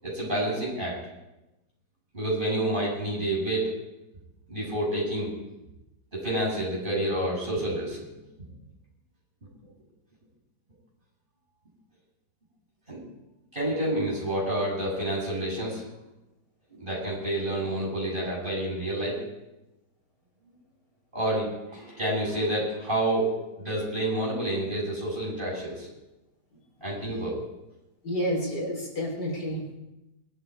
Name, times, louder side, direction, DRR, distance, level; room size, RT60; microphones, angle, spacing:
voice 1, 0.0-1.0 2.1-3.7 4.5-5.3 6.1-8.0 12.9-13.0 13.5-15.9 16.7-19.2 21.1-25.9 26.8-27.4, right 1 dB, 30° right, -4 dB, 8.1 m, -29 dB
voice 2, 28.0-29.7, equal, 75° left, 0 dB, 4.6 m, -30 dB
22.0 x 12.0 x 4.9 m, 0.96 s
omnidirectional pair, 1.8 m